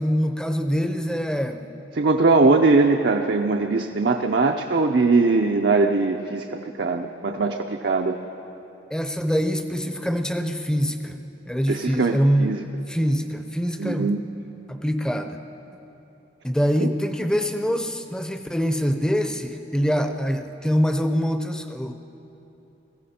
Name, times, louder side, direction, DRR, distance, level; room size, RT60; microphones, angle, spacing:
voice 1, 0.0-1.7 8.9-11.2 11.5-14.2 14.7-15.4 16.4-21.9, equal, 5° left, 7 dB, 0.6 m, -24 dB
voice 2, 1.9-6.4 6.8-8.2 11.7-12.6 13.8-14.2 16.8-16.9, right 3 dB, 65° right, 3 dB, 0.6 m, -20 dB
20.5 x 15.5 x 4.3 m, 3.0 s
head